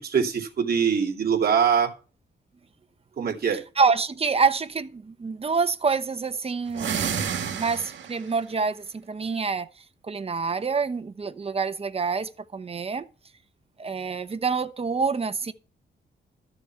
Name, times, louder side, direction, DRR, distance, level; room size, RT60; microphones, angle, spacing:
voice 1, 0.0-1.9 3.2-3.6, right 7 dB, 50° right, 2.7 m, -23 dB
voice 2, 3.8-7.0 7.5-9.7 10.0-13.1 13.8-15.5, right 5 dB, 30° right, 0.9 m, -26 dB
sound 1, 6.7-8.3, right 7 dB, 70° right, 1.8 m, -29 dB
13.0 x 7.0 x 4.6 m
wide cardioid pair, 125°, 20 cm